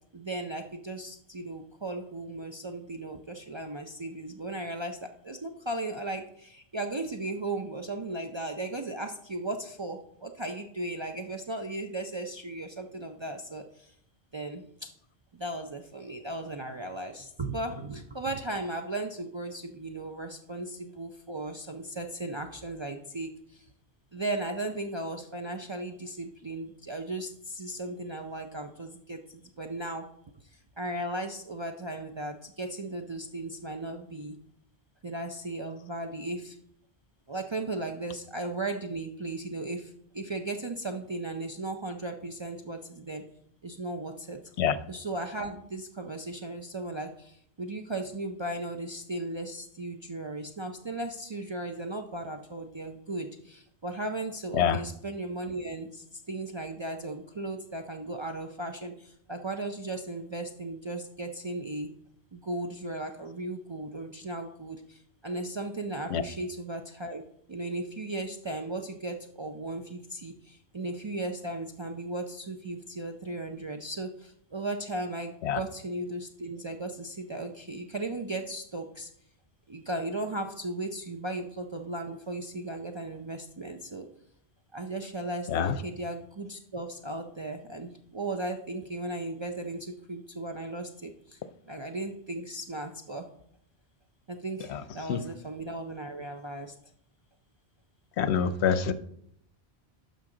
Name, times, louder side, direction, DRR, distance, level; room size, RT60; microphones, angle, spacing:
voice 1, 0.1-13.9 14.3-14.9 15.3-23.7 24.1-30.1 30.5-34.3 35.0-36.6 37.3-43.2 43.6-44.4 44.9-61.9 62.3-67.2 67.5-79.1 79.7-84.1 84.7-91.4 91.7-93.3 94.3-96.7, right 2 dB, 40° right, 4 dB, 0.4 m, -36 dB
voice 2, 98.2-98.9, left 8 dB, 85° left, 14 dB, 0.9 m, -25 dB
12.0 x 5.2 x 3.8 m, 0.71 s
omnidirectional pair, 1.1 m